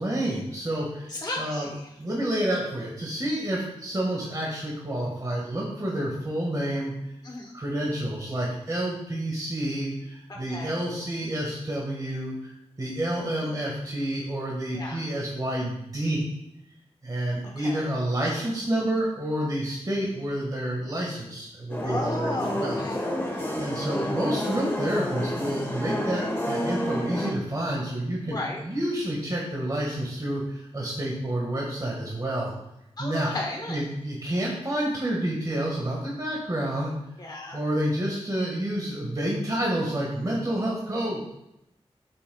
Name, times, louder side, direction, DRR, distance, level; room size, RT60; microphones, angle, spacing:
voice 1, 0.0-1.7 2.0-6.9 7.5-12.5 12.8-16.3 17.0-22.8 23.2-32.5 33.0-33.3 33.7-36.9 37.5-41.2, right 1 dB, 35° right, -3 dB, 1.7 m, -29 dB
voice 2, 1.1-1.8 7.2-7.5 10.3-10.7 14.7-15.0 17.6-17.8 21.8-23.1 28.3-28.6 33.0-33.8 37.2-37.6, left 2 dB, 40° left, -1 dB, 1.0 m, -34 dB
sound 1, 21.7-27.3, left 1 dB, 20° left, 1.4 m, -30 dB
8.4 x 7.6 x 2.3 m, 0.85 s
wide cardioid pair, 90°, 11 cm